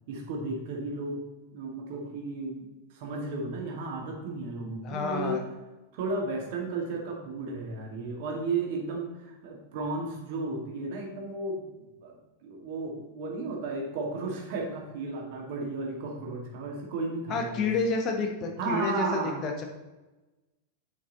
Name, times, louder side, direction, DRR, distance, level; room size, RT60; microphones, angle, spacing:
voice 1, 0.1-1.2 1.5-5.4 5.9-11.7 12.0-17.7 18.6-19.7, right 3 dB, 50° right, 0 dB, 2.0 m, -34 dB
voice 2, 4.8-5.4 17.3-19.7, left 4 dB, 35° left, 3 dB, 1.5 m, -29 dB
9.0 x 5.4 x 4.0 m, 1.1 s
figure-of-eight pair, 90°, 0 cm